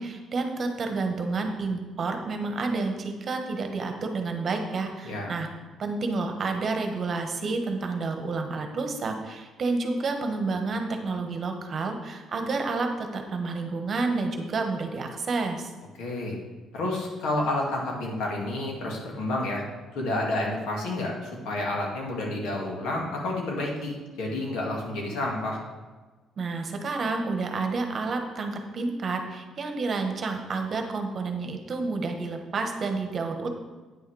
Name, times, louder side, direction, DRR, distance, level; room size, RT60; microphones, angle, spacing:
voice 1, 0.0-5.5 5.8-15.7 26.4-33.5, right 3 dB, 40° right, 5 dB, 1.1 m, -30 dB
voice 2, 16.0-16.4 16.7-19.6 19.9-25.6, left 2 dB, 90° left, -1 dB, 2.2 m, -30 dB
9.1 x 6.5 x 4.8 m, 1.3 s
cardioid pair, 135°, 0 cm